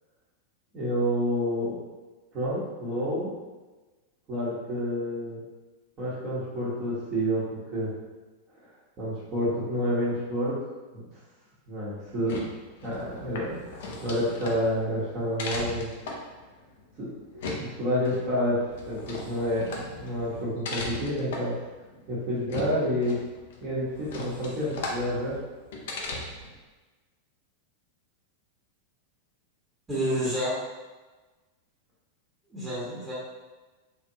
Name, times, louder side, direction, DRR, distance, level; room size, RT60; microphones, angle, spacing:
voice 1, 0.7-1.8 2.3-3.3 4.3-5.4 6.0-7.9 9.0-10.6 10.9-11.0 11.7-12.4 12.8-15.9 17.0-21.5 22.1-23.2 23.6-25.4, equal, 35° right, -9 dB, 1.2 m, -29 dB
sound 1, 12.1-26.6, left 2 dB, 55° left, 0.6 m, -38 dB
voice 2, 29.9-30.5 32.5-33.1, equal, 15° right, -10 dB, 1.3 m, -29 dB
3.7 x 2.6 x 2.8 m, 1.2 s
figure-of-eight pair, 90°, 0 cm